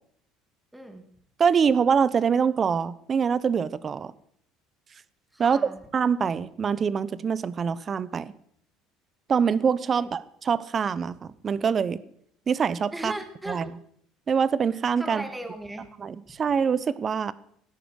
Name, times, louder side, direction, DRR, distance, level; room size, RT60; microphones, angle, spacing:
voice 1, 0.7-1.1 5.3-5.8 9.9-10.1 12.9-13.7 15.0-15.9 16.3-16.4, right 1 dB, 5° right, 7 dB, 2.4 m, -37 dB
voice 2, 1.4-4.1 5.4-5.6 5.9-8.3 9.3-12.0 12.5-13.1 13.5-13.7 14.3-15.2 16.0-17.3, right 6 dB, 35° right, 18 dB, 0.9 m, -24 dB
17.5 x 10.0 x 6.5 m, 0.67 s
supercardioid pair, 110°, 0 cm